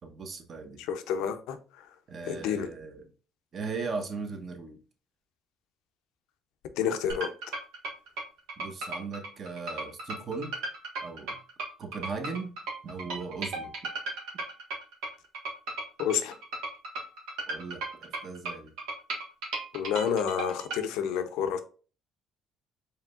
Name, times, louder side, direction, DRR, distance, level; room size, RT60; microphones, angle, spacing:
voice 1, 0.0-0.8 2.1-3.1 3.5-4.8 8.6-10.5 11.0-11.4 11.8-12.5 12.8-13.7 17.5-18.7, right 4 dB, 45° right, 1.0 m, -38 dB
voice 2, 0.8-1.6 2.3-2.7 6.8-7.3 16.0-16.3 19.7-21.6, left 8 dB, 80° left, 0.5 m, -29 dB
sound 1, 7.1-20.8, right 2 dB, 85° right, 1.3 m, -36 dB
4.7 x 3.3 x 2.4 m
cardioid pair, 110°, 0 cm